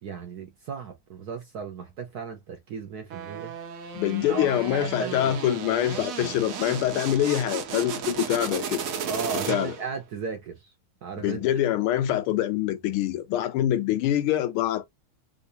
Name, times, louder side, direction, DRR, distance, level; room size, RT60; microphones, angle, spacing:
voice 1, 0.0-3.5 4.3-5.3 5.9-6.4 9.0-10.7 11.0-11.4, right 5 dB, 65° right, 1.0 m, -36 dB
sound 1, 3.1-10.0, right 7 dB, 90° right, 0.7 m, -34 dB
voice 2, 3.9-8.8 9.5-9.8 11.2-14.9, left 12 dB, 85° left, 1.5 m, -25 dB
3.6 x 2.4 x 2.7 m
omnidirectional pair, 2.4 m